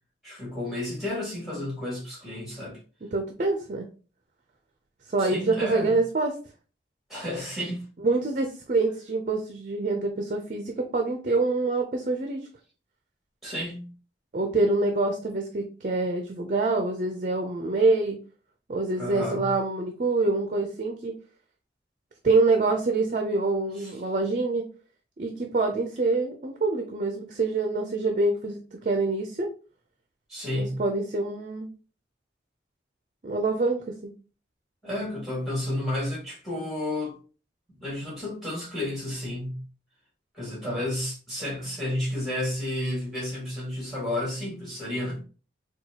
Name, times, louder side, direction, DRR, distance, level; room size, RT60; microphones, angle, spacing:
voice 1, 0.2-2.8 5.2-5.9 7.1-7.8 13.4-13.9 18.9-19.5 23.8-23.9 30.3-30.8 34.8-37.1 37.8-39.6 40.3-45.2, left 1 dB, ahead, 1.8 m, -31 dB
voice 2, 3.0-3.8 5.1-6.3 8.0-12.5 14.3-18.2 18.7-21.1 22.2-24.7 25.2-29.5 30.5-31.7 33.2-34.1, right 3 dB, 45° right, 0.5 m, -26 dB
4.4 x 2.3 x 2.8 m
head